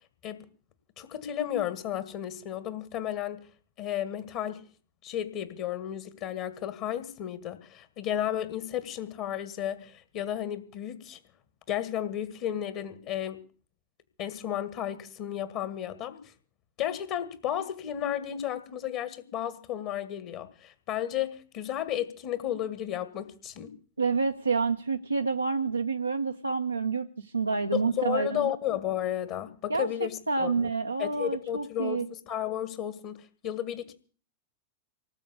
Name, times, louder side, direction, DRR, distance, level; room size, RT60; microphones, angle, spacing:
voice 1, 1.0-3.5 3.8-4.6 5.0-11.2 11.7-13.4 14.2-16.3 16.8-23.7 27.7-30.7 31.0-33.9, left 11 dB, 45° left, 13 dB, 1.8 m, -33 dB
voice 2, 24.0-28.5 29.7-29.9 30.3-32.1, right 4 dB, 85° right, 5 dB, 0.9 m, -28 dB
19.0 x 7.6 x 8.2 m, 0.40 s
figure-of-eight pair, 90°, 0 cm